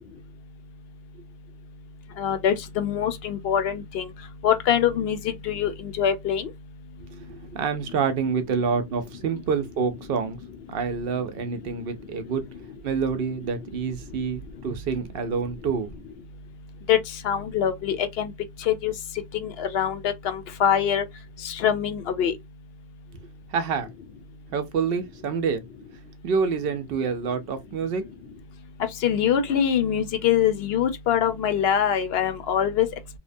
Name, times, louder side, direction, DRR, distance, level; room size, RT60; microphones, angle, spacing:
voice 1, 2.2-4.1 4.4-6.5 9.3-9.4 16.9-17.0 17.2-18.3 18.6-18.9 19.3-21.0 21.4-22.3 29.0-32.9, left 9 dB, 75° left, 0.8 m, -24 dB
voice 2, 7.0-10.4 10.7-12.4 12.8-16.0 23.5-23.9 24.5-25.6 26.2-28.0, right 5 dB, 70° right, 0.7 m, -27 dB
2.8 x 2.0 x 2.5 m
omnidirectional pair, 1.1 m